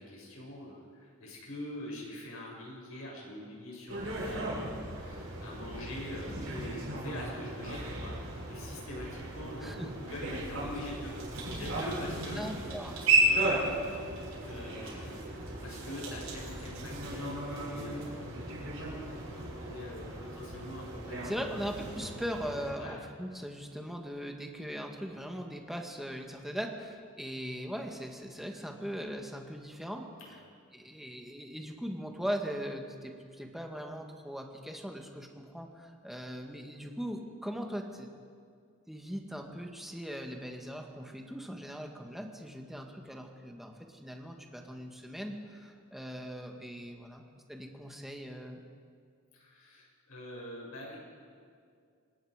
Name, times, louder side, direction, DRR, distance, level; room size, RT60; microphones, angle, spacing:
voice 1, 0.0-11.2 11.5-12.5 13.2-14.0 14.4-21.6 22.7-23.0 30.2-30.4 49.3-51.0, left 1 dB, 85° left, -3 dB, 7.1 m, -44 dB
sound 1, 3.9-22.7, right 2 dB, 75° right, 7.5 m, -35 dB
voice 2, 12.4-13.1 21.2-30.1 30.7-38.1 38.9-47.2 47.5-48.6, equal, ahead, 2 dB, 1.9 m, -40 dB
26.5 x 19.5 x 5.1 m, 2.2 s
head